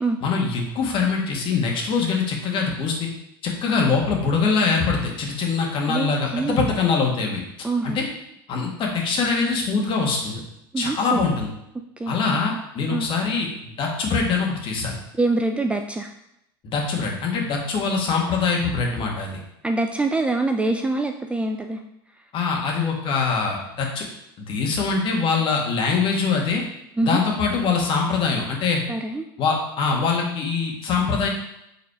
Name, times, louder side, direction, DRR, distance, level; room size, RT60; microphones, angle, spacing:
voice 1, 0.2-3.1 3.4-8.1 8.5-10.4 10.8-11.5 12.1-15.0 16.6-19.3 22.3-24.0 24.4-26.6 27.0-28.8 29.4-31.3, left 4 dB, 45° left, 0 dB, 1.7 m, -23 dB
voice 2, 5.9-6.7 7.6-8.0 10.7-11.2 12.0-12.2 12.9-13.1 15.2-16.1 19.6-21.8 27.0-27.2 28.9-29.3, right 2 dB, 10° right, 4 dB, 0.4 m, -24 dB
5.5 x 3.9 x 4.9 m, 0.82 s
hypercardioid pair, 100°, 13 cm